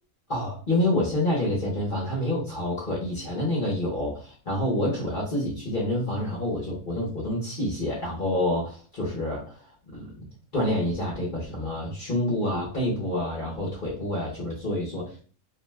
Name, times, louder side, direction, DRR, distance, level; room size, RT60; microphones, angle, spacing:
voice 1, 0.3-9.4 9.9-10.1 10.5-15.2, left 1 dB, 45° left, -5 dB, 0.9 m, -27 dB
2.7 x 2.1 x 3.2 m, 0.41 s
omnidirectional pair, 1.5 m